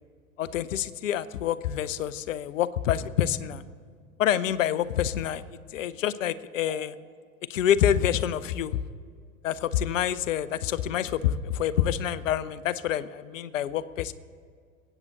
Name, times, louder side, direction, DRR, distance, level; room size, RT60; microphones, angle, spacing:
voice 1, 0.4-3.6 4.2-5.4 5.7-6.9 7.5-8.8 9.4-14.1, left 10 dB, 60° left, 16 dB, 0.7 m, -27 dB
sound 1, 4.3-4.5 6.6-6.9 7.7-7.8, right 6 dB, 15° right, 1.0 m, -47 dB
22.5 x 9.1 x 4.0 m, 2.1 s
figure-of-eight pair, 90°, 43 cm